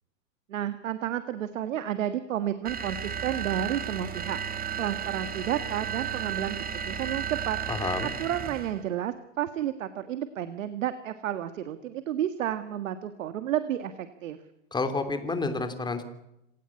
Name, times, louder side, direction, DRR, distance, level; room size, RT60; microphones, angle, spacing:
voice 1, 0.5-6.6 6.8-7.6 8.0-14.4, right 11 dB, 85° right, 11 dB, 1.8 m, -31 dB
sound 1, 2.6-8.8, right 8 dB, 25° right, 2.2 m, -34 dB
voice 2, 7.7-8.1 14.7-16.0, left 3 dB, 10° left, 9 dB, 3.2 m, -29 dB
26.5 x 17.0 x 8.6 m, 0.86 s
hypercardioid pair, 130°, 38 cm